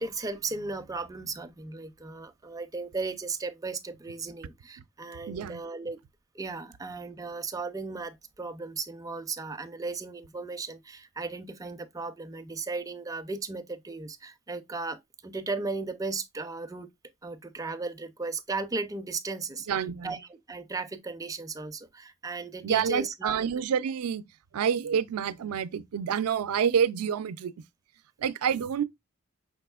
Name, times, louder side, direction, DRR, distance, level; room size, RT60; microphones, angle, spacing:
voice 1, 0.0-6.0 6.3-16.9 17.2-19.7 20.0-23.5 28.5-28.6, right 3 dB, 15° right, 0.4 m, -36 dB
voice 2, 5.3-5.6 19.7-20.1 22.6-24.2 24.5-27.5 28.2-28.8, right 7 dB, 85° right, 0.4 m, -28 dB
5.3 x 4.1 x 2.3 m
head